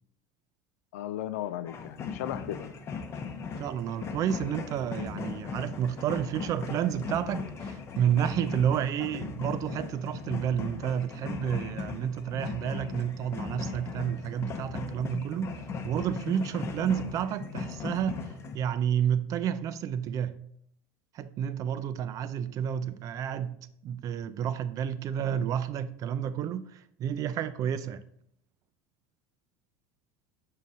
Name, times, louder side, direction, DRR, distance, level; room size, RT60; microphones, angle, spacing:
voice 1, 0.9-2.7 25.2-25.5, left 12 dB, 85° left, 14 dB, 0.4 m, -36 dB
sound 1, 1.7-18.6, left 5 dB, 35° left, 0.8 m, -38 dB
voice 2, 3.6-15.6 15.8-18.2 18.5-20.4 21.1-23.6 23.8-28.0, right 9 dB, 45° right, 13 dB, 0.5 m, -30 dB
6.1 x 3.9 x 4.1 m, 0.70 s
supercardioid pair, 105°, 8 cm